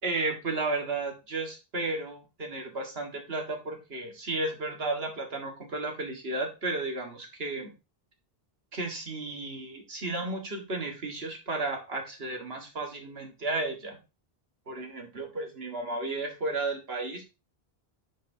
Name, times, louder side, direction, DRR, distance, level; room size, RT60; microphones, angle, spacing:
voice 1, 0.0-7.7 8.7-14.0 14.7-17.2, right 2 dB, 75° right, 2 dB, 2.0 m, -33 dB
10.0 x 5.8 x 2.8 m, 0.28 s
omnidirectional pair, 1.0 m